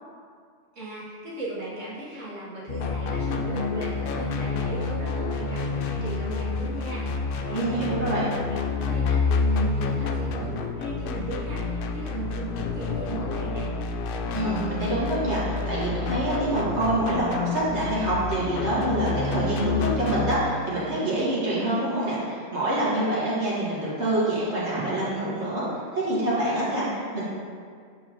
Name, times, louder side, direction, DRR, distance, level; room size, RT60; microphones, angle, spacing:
voice 1, 0.7-7.2 7.5-13.7, right 2 dB, 75° right, -8 dB, 1.8 m, -37 dB
sound 1, 2.7-20.4, left 4 dB, 60° left, 0.6 m, -28 dB
voice 2, 7.5-8.3 14.3-25.7 25.9-27.2, right 1 dB, 60° right, -9 dB, 2.0 m, -26 dB
7.3 x 6.4 x 3.0 m, 2.1 s
omnidirectional pair, 1.3 m